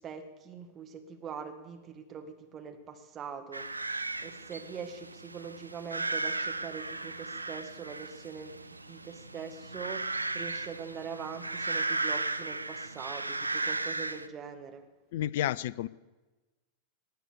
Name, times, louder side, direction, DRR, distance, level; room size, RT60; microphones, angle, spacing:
voice 1, 0.0-3.9 4.2-10.1 10.3-14.8, right 6 dB, 25° right, 6 dB, 1.9 m, -43 dB
sound 1, 3.5-14.3, right 2 dB, 80° right, 0.6 m, -36 dB
voice 2, 15.1-15.9, left 12 dB, 55° left, 20 dB, 0.5 m, -30 dB
19.0 x 8.1 x 7.0 m, 1.2 s
figure-of-eight pair, 90°, 0 cm